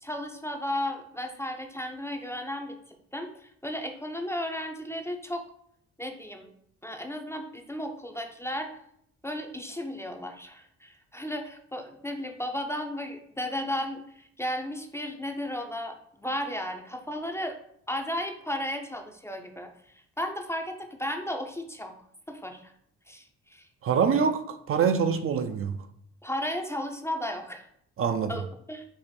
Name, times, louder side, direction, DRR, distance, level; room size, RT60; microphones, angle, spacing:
voice 1, 0.0-5.4 6.0-6.5 6.8-8.7 9.2-17.6 17.9-21.9 22.3-22.7 23.1-23.7 26.2-27.7 28.3-28.9, left 1 dB, 10° left, 4 dB, 0.5 m, -34 dB
voice 2, 23.8-25.7 28.0-28.3, right 6 dB, 45° right, 8 dB, 0.5 m, -25 dB
4.7 x 2.5 x 4.1 m, 0.69 s
cardioid pair, 90°, 30 cm